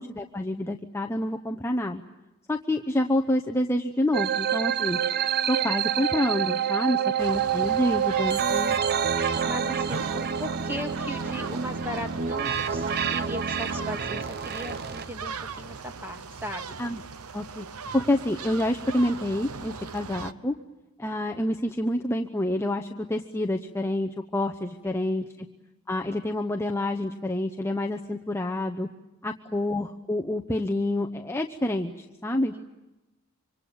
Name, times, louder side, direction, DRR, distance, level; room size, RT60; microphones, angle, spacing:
voice 1, 0.0-2.0 2.5-5.0 5.5-8.8 16.8-17.0 17.3-17.7 17.9-20.5 21.0-25.2 25.9-28.9 29.2-32.5, left 1 dB, 10° left, 3 dB, 0.9 m, -28 dB
sound 1, 4.1-15.0, right 8 dB, 45° right, 0.8 m, -27 dB
sound 2, 7.2-20.3, right 5 dB, 80° right, 0.9 m, -39 dB
voice 2, 9.4-16.8 32.5-32.6, equal, 10° right, 4 dB, 2.4 m, -37 dB
25.5 x 25.5 x 8.6 m, 1.0 s
head